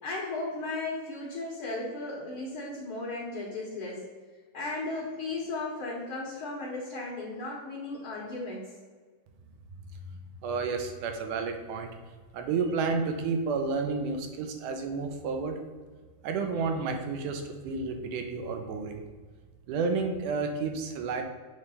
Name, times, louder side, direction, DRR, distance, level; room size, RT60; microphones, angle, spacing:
voice 1, 0.0-4.0 4.5-8.7, left 2 dB, 55° left, -3 dB, 1.6 m, -35 dB
voice 2, 10.4-11.9 12.3-15.6 16.2-19.0 19.7-21.2, right 4 dB, 80° right, 5 dB, 2.2 m, -31 dB
7.8 x 3.3 x 5.4 m, 1.5 s
omnidirectional pair, 3.8 m